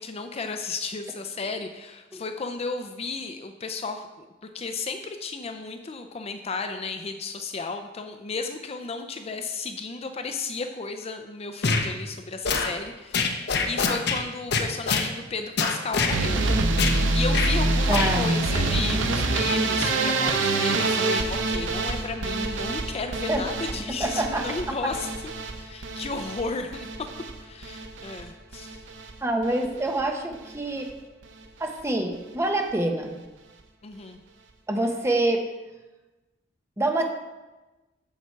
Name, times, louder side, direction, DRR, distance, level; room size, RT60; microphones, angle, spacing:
voice 1, 0.0-4.3 4.5-16.5 16.8-25.1 25.5-27.1 27.4-28.8 33.8-34.2, left 4 dB, 35° left, 6 dB, 0.5 m, -34 dB
sound 1, 11.6-11.9 12.4-12.7 13.1-14.2 14.5-15.1 15.6-16.2 16.8-17.0 17.3-17.5 17.9-18.1, left 4 dB, 60° left, 0.8 m, -24 dB
sound 2, 16.1-28.2 28.5-29.1 29.4-30.0 30.3-30.6 30.9-31.0 31.2-31.3, right 2 dB, 90° right, 0.8 m, -26 dB
voice 2, 17.9-18.3 23.3-23.4 24.0-24.5 29.2-30.9 31.6-33.2 34.7-35.5 36.8-37.1, right 1 dB, 15° right, 3 dB, 0.9 m, -26 dB
7.2 x 7.2 x 4.5 m, 1.1 s
head